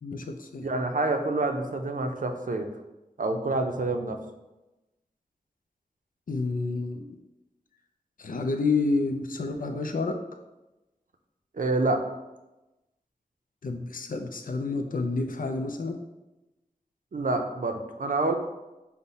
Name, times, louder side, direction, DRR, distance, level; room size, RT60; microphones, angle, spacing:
voice 1, 0.0-0.7 6.3-7.0 8.2-10.2 13.6-16.0, left 3 dB, 75° left, 5 dB, 0.4 m, -29 dB
voice 2, 0.6-2.7 3.2-4.2 11.5-12.0 17.1-18.3, right 2 dB, 70° right, 5 dB, 0.5 m, -27 dB
5.4 x 2.1 x 4.1 m, 1.0 s
wide cardioid pair, 45°, 14 cm